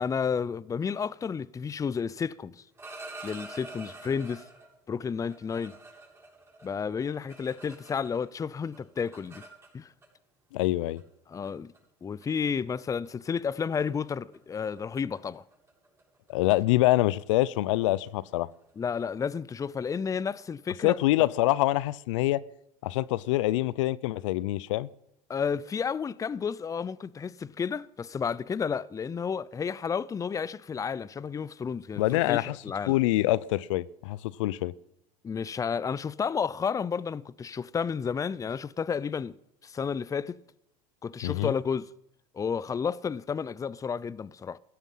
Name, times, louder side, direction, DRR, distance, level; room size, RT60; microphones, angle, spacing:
voice 1, 0.0-2.6 3.2-4.4 4.9-5.7 6.6-9.4 9.7-9.9 11.3-11.7 12.0-15.4 18.8-21.0 25.3-33.0 35.2-39.4 39.6-40.4 41.0-41.9 42.3-44.6, left 6 dB, 20° left, 0.6 m, -31 dB
sound 1, 2.6-4.7 5.2-8.3 8.5-10.1 11.0-11.1 11.4-11.8 12.2-12.5 12.8-13.1 13.3-13.6 13.9-19.3, right 2 dB, 15° right, 7.5 m, -48 dB
voice 2, 10.5-11.0 16.3-18.5 20.8-22.4 22.8-24.9 32.0-32.6 32.9-34.7 41.2-41.5, left 17 dB, 80° left, 0.6 m, -25 dB
16.0 x 13.5 x 5.6 m
supercardioid pair, 100°, 16 cm